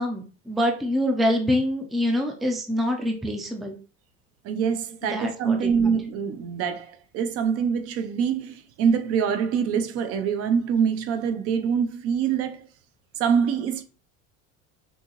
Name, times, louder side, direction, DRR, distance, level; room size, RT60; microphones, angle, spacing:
voice 1, 0.0-3.8 5.0-6.0, left 1 dB, ahead, 0.4 m, -25 dB
voice 2, 4.4-12.7 13.2-13.8, right 7 dB, 50° right, 0.6 m, -25 dB
6.3 x 2.8 x 2.9 m
cardioid pair, 165°, 31 cm